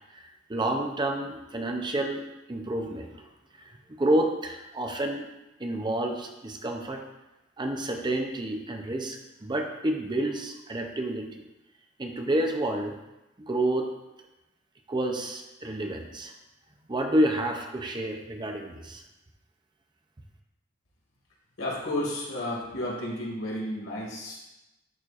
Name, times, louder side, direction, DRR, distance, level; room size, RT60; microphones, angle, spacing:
voice 1, 0.5-2.2 2.5-3.3 3.6-5.3 5.6-7.0 7.6-11.4 12.0-12.9 13.4-13.9 14.9-16.3 16.9-19.0, right 1 dB, 20° right, 3 dB, 0.6 m, -29 dB
voice 2, 21.6-24.4, left 1 dB, 80° left, -4 dB, 2.3 m, -32 dB
11.0 x 4.3 x 2.5 m, 0.97 s
head